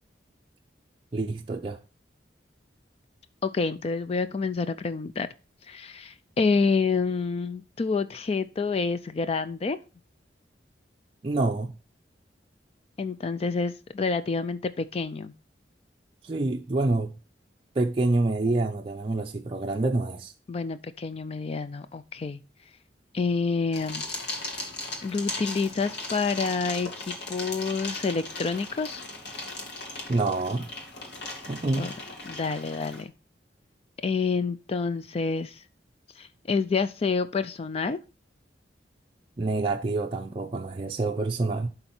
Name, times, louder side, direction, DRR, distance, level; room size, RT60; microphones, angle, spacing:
voice 1, 1.1-1.8 11.2-11.7 16.2-17.2 17.8-20.3 30.1-30.7 31.5-31.9 39.4-41.7, right 2 dB, 30° right, 0.5 m, -27 dB
voice 2, 3.4-5.3 5.7-9.8 13.0-15.3 20.5-22.4 23.1-24.0 25.0-29.1 31.8-31.9 32.3-33.1 34.0-35.6 36.2-38.0, left 4 dB, 35° left, 0.4 m, -28 dB
sound 1, 23.7-33.0, left 2 dB, 70° left, 2.4 m, -37 dB
11.5 x 3.9 x 4.3 m
head